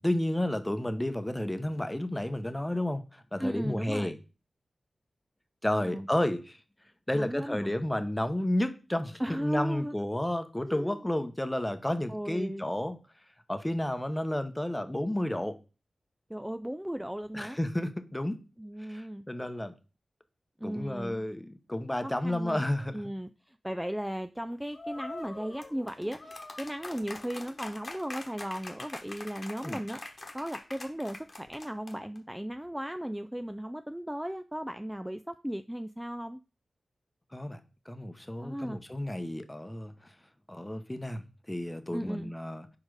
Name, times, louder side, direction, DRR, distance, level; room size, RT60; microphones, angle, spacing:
voice 1, 0.0-4.2 5.6-6.6 7.1-13.0 13.5-15.6 17.3-18.4 18.8-19.7 20.6-22.9 29.6-29.8 37.3-37.6 37.9-40.1 40.5-42.7, left 1 dB, 15° left, 0.9 m, -31 dB
voice 2, 3.4-4.1 5.8-6.1 7.1-7.8 9.2-9.9 10.6-11.0 12.1-12.7 16.3-17.6 18.6-19.2 20.6-21.3 22.0-22.6 22.9-30.0 30.3-36.4 38.4-38.8 41.9-42.3, equal, 5° right, 0.3 m, -36 dB
sound 1, 24.7-32.2, left 2 dB, 45° left, 1.1 m, -43 dB
4.8 x 4.3 x 4.7 m
cardioid pair, 45°, 0 cm